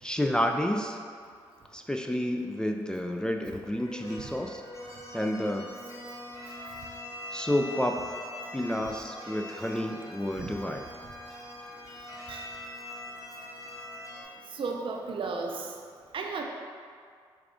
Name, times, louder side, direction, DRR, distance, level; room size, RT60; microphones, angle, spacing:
voice 1, 0.0-1.0 1.7-4.6 5.1-5.7 7.3-8.0 8.5-10.9, left 1 dB, 5° left, 3 dB, 0.3 m, -30 dB
sound 1, 3.6-14.2, left 1 dB, 30° left, 0.9 m, -43 dB
voice 2, 14.5-15.7 16.1-16.4, right 4 dB, 55° right, 2 dB, 0.5 m, -33 dB
4.7 x 2.4 x 3.7 m, 2.1 s
supercardioid pair, 50°, 10 cm